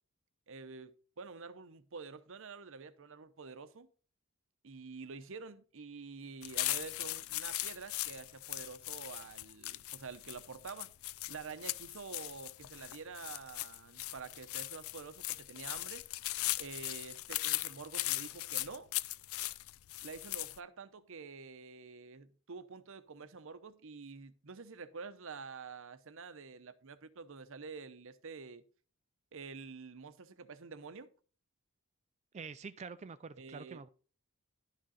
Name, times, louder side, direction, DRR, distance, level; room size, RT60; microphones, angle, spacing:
voice 1, 0.5-3.9 4.6-10.9 11.3-16.0 16.6-18.9 20.0-28.6 29.3-31.1 33.4-33.8, right 4 dB, 65° right, 0.8 m, -48 dB
sound 1, 6.4-20.6, left 17 dB, 70° left, 0.4 m, -39 dB
voice 2, 32.3-33.9, right 5 dB, 30° right, 0.4 m, -46 dB
11.5 x 6.3 x 4.2 m
head